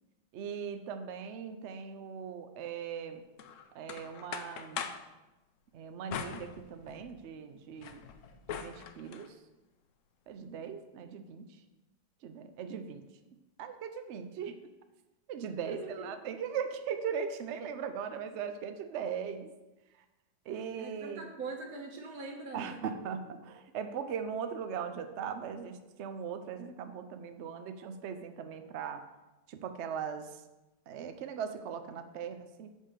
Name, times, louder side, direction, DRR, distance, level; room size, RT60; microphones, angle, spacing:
voice 1, 0.3-3.2 3.7-4.9 5.7-8.0 8.5-9.4 10.3-11.6 12.2-13.1 13.6-14.6 15.3-19.5 19.9-20.0 20.4-21.3 22.5-29.1 29.5-30.5 30.9-32.7, right 7 dB, 85° right, 8 dB, 0.6 m, -39 dB
sound 1, 3.4-5.1 6.1-7.2 7.6-9.3, left 8 dB, 85° left, 0.7 m, -42 dB
voice 2, 15.7-16.1 20.7-22.8, right 3 dB, 55° right, 1 dB, 1.7 m, -42 dB
8.5 x 3.7 x 6.6 m, 1.0 s
omnidirectional pair, 1.9 m